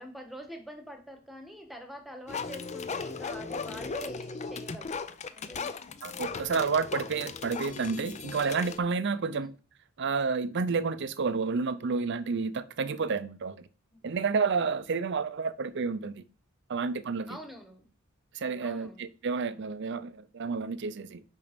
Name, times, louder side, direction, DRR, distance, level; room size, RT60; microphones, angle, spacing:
voice 1, 0.0-5.0 5.3-5.8 9.3-9.5 17.3-17.9 18.6-19.1, equal, ahead, 1.3 m, -45 dB
sound 1, 2.3-8.8, left 5 dB, 35° left, 0.5 m, -37 dB
voice 2, 6.0-9.5 10.0-13.7 14.0-16.2 16.7-17.4 18.3-21.2, right 4 dB, 55° right, 0.5 m, -30 dB
6.9 x 5.3 x 5.2 m
head